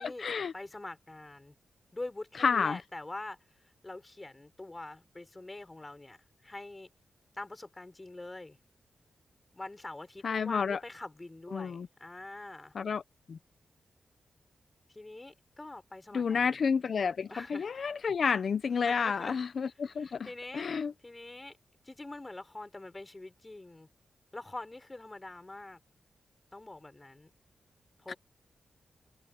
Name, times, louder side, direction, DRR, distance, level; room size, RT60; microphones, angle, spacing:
voice 1, 0.0-0.5 2.4-2.8 10.2-10.8 11.5-11.9 12.7-13.0 13.3-13.4 16.1-20.9 28.1-28.2, left 6 dB, 60° left, 0.7 m, -30 dB
voice 2, 0.5-1.5 1.9-3.4 3.8-6.9 7.3-8.6 9.5-12.7 14.9-16.6 17.3-17.7 18.9-19.4 19.9-20.7 21.0-21.6 21.8-23.9 24.3-25.8 26.5-27.3 28.0-28.2, left 2 dB, 20° left, 3.5 m, -44 dB
wide cardioid pair, 125°, 0 cm